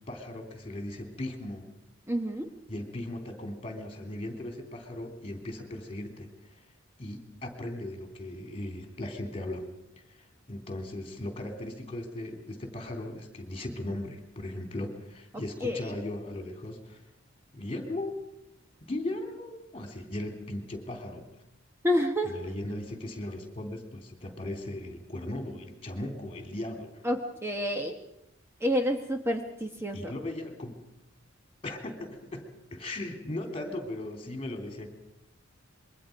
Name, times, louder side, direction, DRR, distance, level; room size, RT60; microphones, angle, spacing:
voice 1, 0.1-1.6 2.7-6.3 7.0-9.6 10.1-17.0 17.5-18.2 18.8-21.3 22.2-27.0 29.9-30.8 31.6-34.9, left 1 dB, 30° left, 5 dB, 3.3 m, -37 dB
voice 2, 2.1-2.5 15.6-16.0 21.8-22.3 27.0-28.0 28.6-30.1, equal, 10° right, 4 dB, 1.1 m, -29 dB
26.5 x 22.5 x 5.2 m, 0.82 s
head